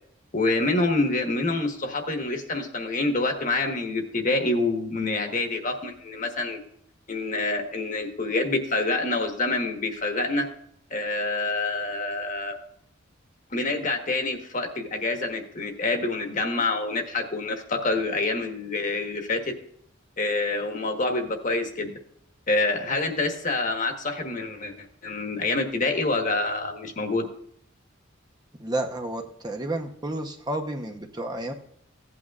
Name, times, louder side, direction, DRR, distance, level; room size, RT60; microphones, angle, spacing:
voice 1, 0.3-6.6 7.1-10.5 10.9-12.6 13.5-19.5 20.2-21.9 22.5-24.7 25.0-27.3, left 2 dB, 40° left, 4 dB, 1.3 m, -27 dB
voice 2, 28.6-31.5, right 1 dB, 20° right, 3 dB, 0.7 m, -31 dB
16.0 x 8.6 x 2.4 m, 0.68 s
head